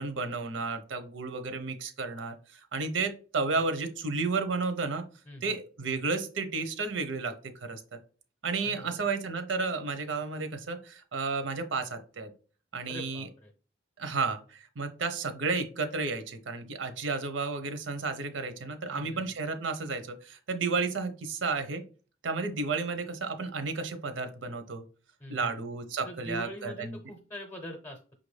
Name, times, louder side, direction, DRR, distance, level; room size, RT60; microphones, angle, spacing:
voice 1, 0.0-5.0 5.4-7.8 8.4-12.3 12.7-13.3 14.0-21.8 22.2-24.8 25.3-27.0, right 4 dB, 80° right, 9 dB, 0.7 m, -32 dB
voice 2, 5.3-5.6 8.6-9.0 12.9-13.5 18.9-19.4 25.2-25.5 26.0-28.0, equal, 20° left, 2 dB, 0.6 m, -43 dB
5.6 x 2.5 x 3.2 m, 0.38 s
head